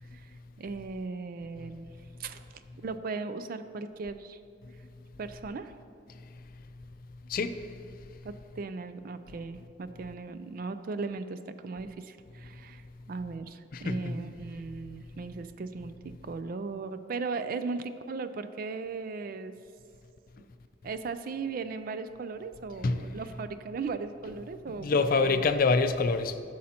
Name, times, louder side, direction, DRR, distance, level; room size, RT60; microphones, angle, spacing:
voice 1, 0.1-1.9 2.2-2.5 2.8-4.4 5.2-5.7 8.2-12.8 13.1-19.5 20.4-20.5 20.8-25.4, right 4 dB, 50° right, 0.4 m, -37 dB
voice 2, 7.3-7.6 13.7-14.2 22.8-23.1 24.8-26.4, left 4 dB, 50° left, 0.4 m, -26 dB
14.0 x 6.3 x 2.9 m
head